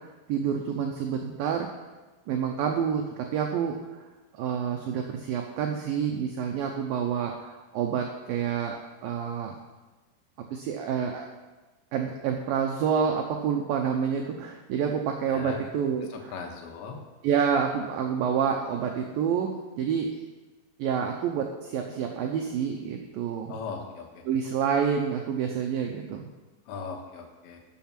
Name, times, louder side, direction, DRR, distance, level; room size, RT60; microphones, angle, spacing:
voice 1, 0.3-1.7 2.3-3.8 4.3-9.6 10.5-11.3 11.9-16.3 17.2-20.2 20.8-23.6 24.3-26.3, right 7 dB, 85° right, 2 dB, 2.0 m, -28 dB
voice 2, 15.3-15.6 16.1-17.0 23.5-24.2 26.7-27.6, left 5 dB, 80° left, 2 dB, 3.5 m, -38 dB
13.0 x 7.0 x 5.9 m, 1.2 s
omnidirectional pair, 5.2 m